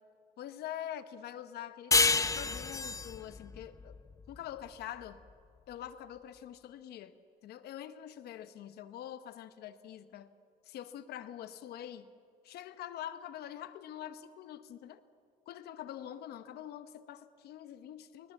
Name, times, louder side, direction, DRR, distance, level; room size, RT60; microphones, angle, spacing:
voice 1, 0.4-4.0 4.3-5.2 5.7-7.2 7.4-10.3 10.6-12.1 12.4-15.0 15.5-18.3, left 11 dB, 70° left, 12 dB, 1.0 m, -45 dB
sound 1, 1.9-5.1, left 4 dB, 20° left, 0.6 m, -30 dB
22.0 x 21.0 x 7.2 m, 2.3 s
cardioid pair, 110°, 17 cm